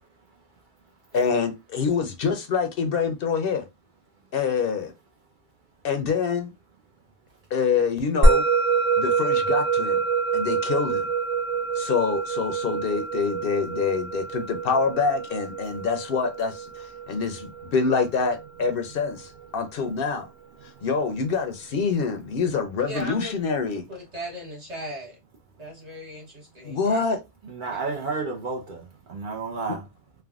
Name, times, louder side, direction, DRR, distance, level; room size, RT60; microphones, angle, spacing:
voice 1, 1.1-3.6 4.3-4.9 5.8-6.5 7.5-8.4 9.0-10.0 10.3-11.0 11.8-20.3 20.8-23.8 26.6-27.2, left 5 dB, 65° left, 0.7 m, -26 dB
Musical instrument, 8.2-18.8, right 3 dB, 90° right, 0.9 m, -25 dB
voice 2, 22.9-23.3 23.7-25.2 25.6-27.0 27.7-27.8, equal, 40° right, 1.1 m, -37 dB
voice 3, 27.4-28.8 29.1-29.8, right 4 dB, 55° right, 0.7 m, -31 dB
3.3 x 2.1 x 2.3 m
omnidirectional pair, 1.1 m